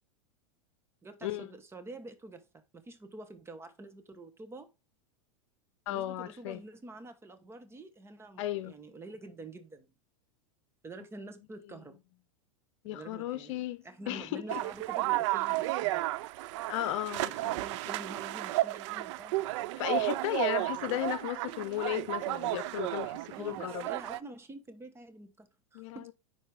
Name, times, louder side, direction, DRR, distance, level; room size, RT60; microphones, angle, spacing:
voice 1, 1.0-4.7 5.9-9.9 10.8-12.0 12.9-13.5 13.8-16.1 17.2-19.8 23.4-26.1, right 2 dB, 15° right, 1.1 m, -47 dB
voice 2, 5.9-6.6 8.4-8.7 12.8-14.6 16.7-17.6 19.8-23.9 25.7-26.1, left 14 dB, 65° left, 0.8 m, -35 dB
sound 1, 14.5-24.2, right 18 dB, 60° right, 0.4 m, -33 dB
9.9 x 4.2 x 3.5 m
hypercardioid pair, 120°, 17 cm